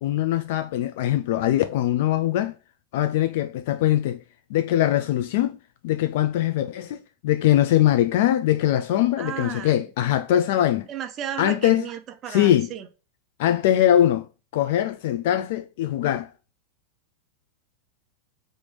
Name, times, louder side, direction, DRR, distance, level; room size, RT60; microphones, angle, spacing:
voice 1, 0.0-2.6 2.9-4.2 4.5-5.6 5.8-7.0 7.2-10.9 11.4-11.8 12.3-12.7 13.4-14.3 14.5-16.3, left 12 dB, 60° left, 0.3 m, -22 dB
voice 2, 9.2-9.9 10.9-12.9, right 9 dB, 30° right, 0.5 m, -34 dB
3.4 x 2.6 x 3.0 m
supercardioid pair, 150°, 0 cm